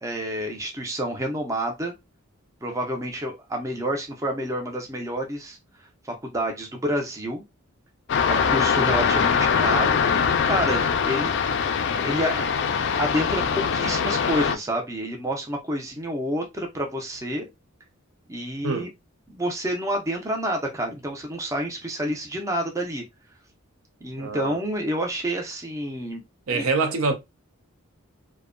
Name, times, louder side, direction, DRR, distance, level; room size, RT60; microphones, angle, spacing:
voice 1, 0.0-1.9 2.6-5.6 6.0-7.4 8.3-11.3 11.6-17.5 18.3-18.9 19.3-23.0 24.0-26.2 26.5-26.7, equal, 15° right, 0.4 m, -29 dB
sound 1, 8.1-14.6, left 6 dB, 55° left, 0.3 m, -22 dB
voice 2, 24.2-24.6 26.5-27.1, right 4 dB, 85° right, 0.6 m, -25 dB
2.6 x 2.1 x 2.4 m
head